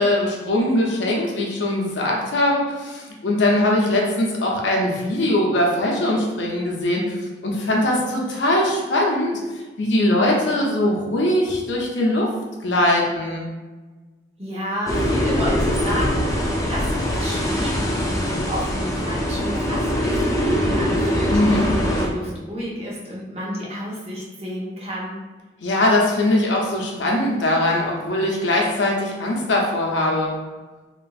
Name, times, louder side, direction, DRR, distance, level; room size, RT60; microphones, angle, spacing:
voice 1, 0.0-7.2 7.4-12.3 12.6-13.5 21.3-21.7 25.6-30.3, left 1 dB, 85° left, -2 dB, 0.6 m, -21 dB
voice 2, 14.4-25.2, equal, 35° right, -5 dB, 0.7 m, -31 dB
sound 1, 14.9-22.1, equal, 15° left, 0.3 m, -22 dB
3.0 x 2.5 x 2.3 m, 1.3 s
head